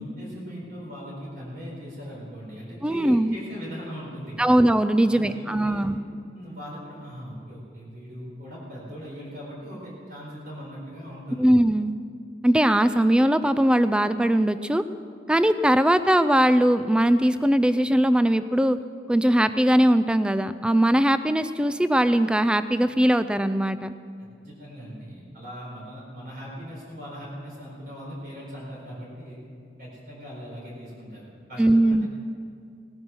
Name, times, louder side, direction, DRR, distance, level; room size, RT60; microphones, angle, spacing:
voice 1, 0.0-4.6 5.0-5.9 6.3-11.5 24.2-29.4 29.8-32.1, equal, 55° right, -5 dB, 4.3 m, -39 dB
voice 2, 2.8-3.4 4.4-6.0 11.4-11.9 12.4-14.8 15.3-18.8 19.1-23.9 31.6-32.1, right 1 dB, 5° right, 12 dB, 0.3 m, -20 dB
18.0 x 9.6 x 6.1 m, 2.2 s
head